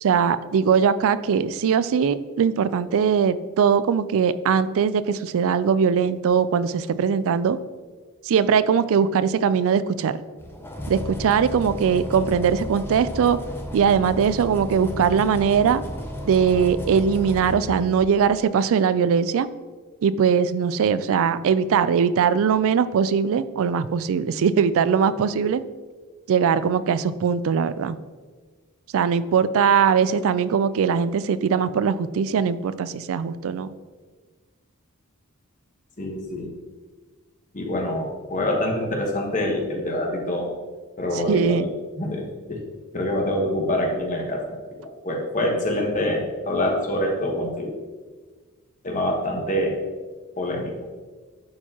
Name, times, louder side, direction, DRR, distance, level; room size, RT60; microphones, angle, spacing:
voice 1, 0.0-7.6 8.2-10.2 10.9-13.4 13.7-15.8 16.2-19.5 20.0-25.6 26.3-28.0 28.9-33.7 41.3-41.7, right 6 dB, 65° right, 15 dB, 0.3 m, -21 dB
sound 1, 10.4-18.4, left 1 dB, 10° left, 0.7 m, -34 dB
voice 2, 36.0-36.5 37.5-40.5 41.0-41.7 42.0-42.6 42.9-47.8 48.8-49.7 50.4-50.7, left 1 dB, 35° left, 1 dB, 1.2 m, -25 dB
11.0 x 4.6 x 2.9 m, 1.4 s
head